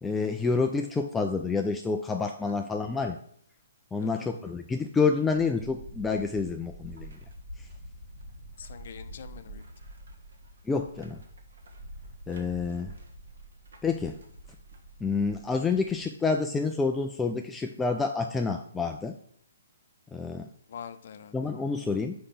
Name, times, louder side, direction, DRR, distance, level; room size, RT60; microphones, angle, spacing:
voice 1, 0.0-3.2 3.9-7.1 10.7-11.2 12.3-12.9 13.8-14.2 15.0-19.2 20.1-20.5 21.3-22.1, left 4 dB, 10° left, 4 dB, 0.4 m, -28 dB
sound 1, 5.2-16.0, right 1 dB, 70° right, 1.5 m, -47 dB
voice 2, 8.6-9.6 20.7-21.3, left 7 dB, 55° left, 10 dB, 0.7 m, -44 dB
5.1 x 5.0 x 5.9 m, 0.66 s
hypercardioid pair, 140°, 0 cm